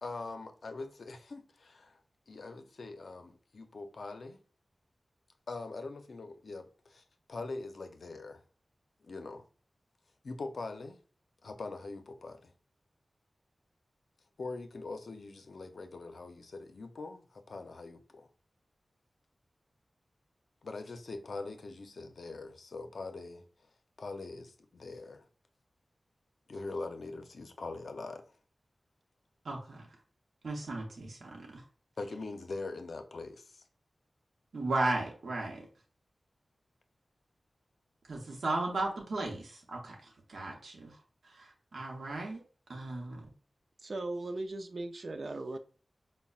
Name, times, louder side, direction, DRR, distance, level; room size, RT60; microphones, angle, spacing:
voice 1, 0.0-2.0 2.3-4.4 5.5-7.0 7.3-8.4 9.0-9.4 10.2-11.0 11.4-12.5 14.4-18.3 20.6-23.4 24.0-25.2 26.5-28.3 32.0-33.6, left 3 dB, 80° left, 0.5 m, -42 dB
voice 2, 29.4-29.9 30.4-31.6 34.5-35.6 38.1-41.0 41.2-42.4 42.7-43.3, right 2 dB, 90° right, 0.8 m, -36 dB
voice 3, 43.8-45.6, right 2 dB, 65° right, 0.4 m, -38 dB
5.2 x 2.1 x 2.3 m
cardioid pair, 55°, 0 cm